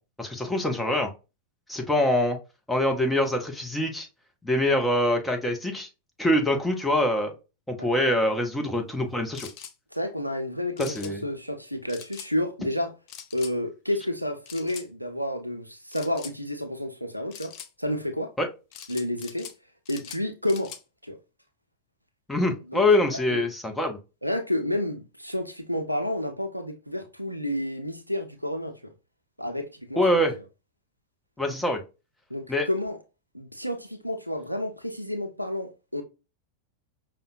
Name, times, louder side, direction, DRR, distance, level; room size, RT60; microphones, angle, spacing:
voice 1, 0.2-1.1 1.7-2.4 2.7-4.1 4.4-5.9 6.2-7.3 7.7-9.5 10.8-11.2 18.4-18.5 22.3-24.0 30.0-30.3 31.4-31.8 32.5-32.7, left 1 dB, 5° left, 0.8 m, -24 dB
sound 1, 9.3-9.7 10.8-11.1 11.9-12.3 13.1-13.5 14.5-14.9 15.9-16.4 17.3-17.7 18.7-19.6 19.9-20.8, left 9 dB, 40° left, 0.4 m, -43 dB
voice 2, 9.9-12.9 13.3-18.3 18.9-19.5 19.9-20.7 21.0-21.2 22.7-22.8 23.1-23.5 24.2-28.9 29.4-30.4 32.3-33.0 33.3-36.0, left 1 dB, 90° right, 0.5 m, -30 dB
5.2 x 2.1 x 2.5 m
figure-of-eight pair, 90°, 0 cm